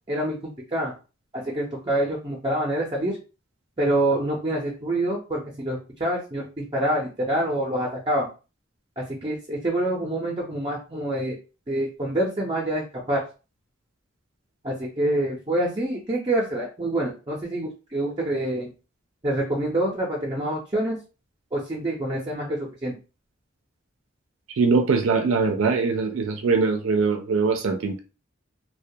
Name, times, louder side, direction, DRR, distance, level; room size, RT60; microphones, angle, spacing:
voice 1, 0.1-0.9 1.3-3.2 3.8-8.3 9.0-11.4 11.7-13.2 14.6-18.7 19.2-21.0 21.5-23.0, right 1 dB, 25° right, -2 dB, 0.5 m, -26 dB
voice 2, 24.6-28.0, right 4 dB, 80° right, 5 dB, 0.4 m, -22 dB
2.2 x 2.1 x 2.6 m, 0.32 s
head